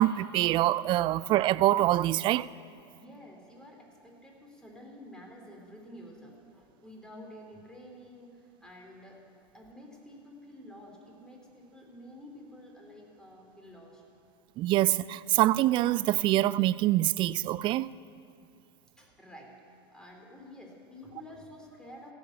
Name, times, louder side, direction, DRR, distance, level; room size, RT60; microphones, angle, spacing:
voice 1, 0.0-2.5 14.6-17.9, right 15 dB, 40° right, 0.4 m, -25 dB
voice 2, 2.9-9.2 9.5-14.0 19.0-22.1, left 1 dB, 5° left, 3.4 m, -50 dB
15.5 x 7.0 x 9.4 m
hypercardioid pair, 90°, 13 cm